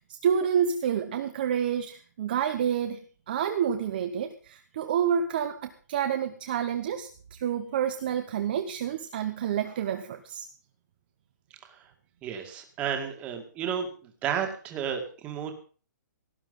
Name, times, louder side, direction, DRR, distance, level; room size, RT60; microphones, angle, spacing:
voice 1, 0.2-3.0 3.3-5.6 5.9-10.5, right 8 dB, 30° right, 7 dB, 1.1 m, -28 dB
voice 2, 12.2-13.9 14.2-15.5, right 8 dB, 15° right, 4 dB, 2.1 m, -32 dB
18.0 x 9.9 x 5.5 m, 0.39 s
hypercardioid pair, 175°, 10 cm